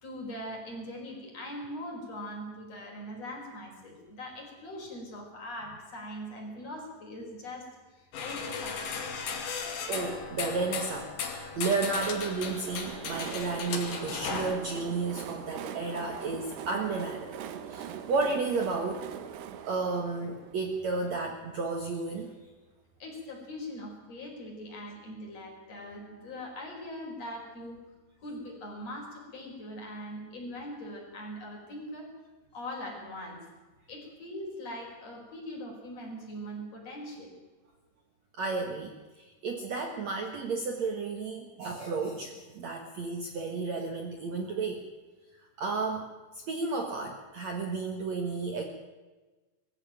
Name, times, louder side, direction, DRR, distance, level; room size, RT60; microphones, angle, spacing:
voice 1, 0.0-7.7 8.0-8.9 23.0-27.8 28.2-32.1 32.5-33.4 33.9-37.3, left 1 dB, 40° left, 0 dB, 5.9 m, -41 dB
sound 1, 8.1-14.6, left 5 dB, 70° left, 4.2 m, -36 dB
voice 2, 9.9-19.1 19.7-22.4 38.4-44.8 45.4-46.1 46.3-48.6, right 4 dB, 55° right, 3 dB, 2.2 m, -32 dB
Train, 12.0-21.7, right 9 dB, 90° right, 3.4 m, -42 dB
21.0 x 15.0 x 9.0 m, 1.3 s
omnidirectional pair, 4.6 m